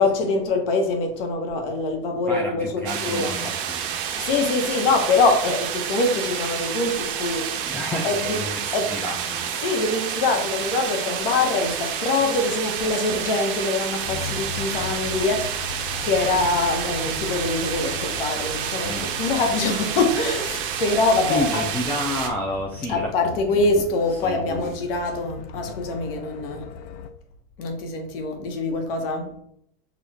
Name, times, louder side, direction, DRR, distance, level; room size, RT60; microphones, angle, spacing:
voice 1, 0.0-3.3 4.2-7.8 8.0-8.4 8.7-9.0 9.6-21.7 22.9-26.6 27.6-29.4, left 3 dB, 70° left, 1.2 m, -24 dB
voice 2, 2.3-4.0 7.6-9.5 18.8-19.3 21.3-23.8 24.2-24.7, left 1 dB, 5° left, 0.3 m, -30 dB
sound 1, 2.9-22.3, right 8 dB, 60° right, 0.9 m, -29 dB
sound 2, 14.0-27.1, left 6 dB, 85° left, 0.6 m, -38 dB
6.2 x 2.5 x 3.4 m
supercardioid pair, 145°, 30 cm